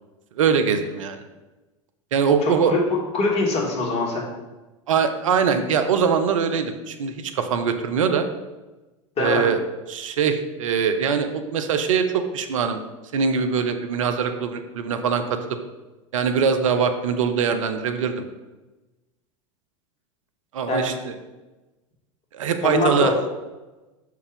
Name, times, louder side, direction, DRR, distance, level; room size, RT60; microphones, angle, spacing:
voice 1, 0.4-1.2 2.1-2.7 4.9-8.2 9.2-9.6 9.9-12.8 13.1-15.4 16.1-18.2 20.5-21.1 22.3-23.1, right 6 dB, 75° right, 8 dB, 0.8 m, -22 dB
voice 2, 2.4-2.8 3.1-4.2 9.2-9.4 20.7-20.9 22.6-23.1, left 3 dB, 40° left, -1 dB, 2.3 m, -23 dB
6.7 x 4.8 x 5.3 m, 1.1 s
hypercardioid pair, 90°, 17 cm